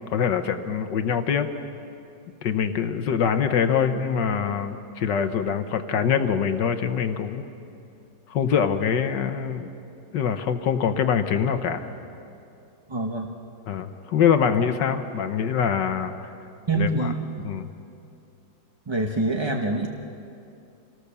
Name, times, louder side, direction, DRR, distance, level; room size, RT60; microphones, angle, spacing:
voice 1, 0.1-1.5 2.4-7.5 8.3-9.7 10.1-11.9 13.7-16.1 16.7-17.1 17.4-17.7, left 7 dB, 65° left, 8 dB, 1.5 m, -24 dB
voice 2, 12.9-13.3 16.7-17.1 18.9-19.9, right 2 dB, 25° right, 2 dB, 0.6 m, -25 dB
26.5 x 19.0 x 6.9 m, 2.6 s
omnidirectional pair, 2.2 m